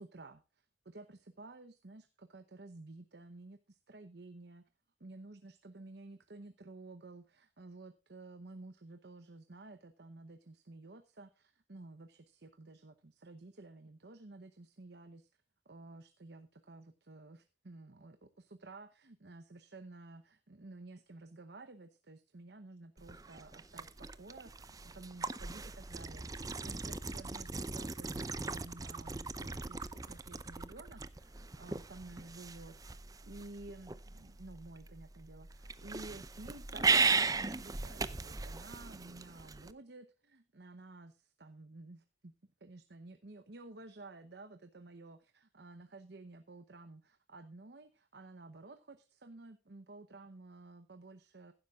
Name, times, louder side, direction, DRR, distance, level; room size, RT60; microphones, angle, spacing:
voice 1, 0.0-4.7 5.0-15.3 15.7-42.3 42.6-51.5, right 2 dB, 65° right, 10 dB, 0.9 m, -53 dB
sound 1, 23.0-39.7, right 4 dB, 20° right, 0.6 m, -37 dB
15.5 x 12.0 x 2.4 m, 0.31 s
head